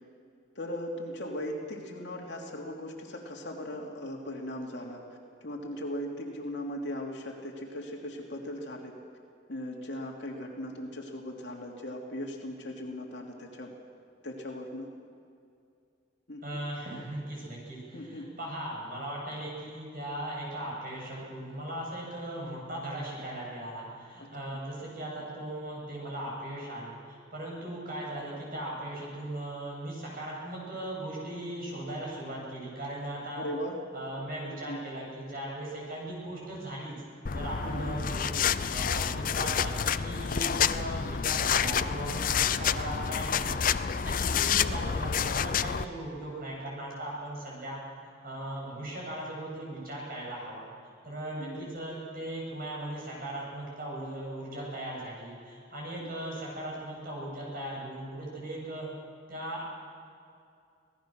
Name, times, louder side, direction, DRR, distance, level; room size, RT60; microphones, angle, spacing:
voice 1, 0.5-5.0 5.4-8.9 9.5-13.7 14.2-14.9 16.3-16.4 17.9-18.3 24.2-24.3 33.4-33.8 34.5-34.8 37.6-38.0 44.2-44.5 51.4-51.7 56.0-56.1, left 1 dB, 65° left, 0 dB, 3.1 m, -38 dB
voice 2, 16.4-33.4 33.9-36.9 37.3-43.6 44.0-47.8 48.2-50.7 51.0-58.9 59.3-59.7, right 1 dB, 50° right, -3 dB, 7.9 m, -38 dB
sound 1, 37.2-45.8, left 7 dB, 45° left, 0.5 m, -28 dB
26.0 x 18.0 x 6.5 m, 2.4 s
head